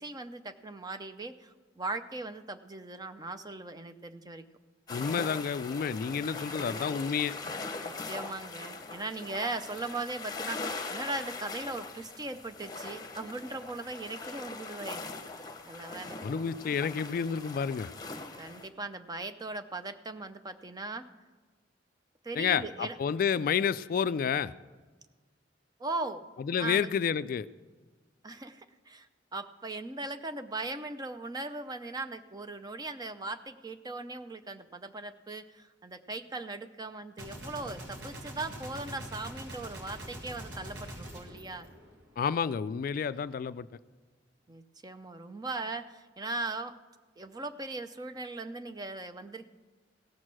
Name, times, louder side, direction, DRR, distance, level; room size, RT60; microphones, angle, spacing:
voice 1, 0.0-4.4 7.8-15.0 15.4-16.2 16.6-16.7 18.4-21.1 22.2-23.0 25.8-26.2 26.6-26.9 28.2-29.1 29.3-41.7 44.5-46.7 47.2-49.5, right 2 dB, 20° right, 9 dB, 0.5 m, -39 dB
voice 2, 4.9-7.3 16.2-17.9 22.4-24.5 26.5-27.5 42.2-43.7, left 7 dB, 50° left, 15 dB, 0.3 m, -30 dB
sound 1, 4.9-18.7, left 3 dB, 20° left, 1.0 m, -41 dB
Gunshot gunfire, 37.2-42.4, right 1 dB, 75° right, 2.0 m, -44 dB
17.0 x 6.4 x 6.1 m, 1.4 s
head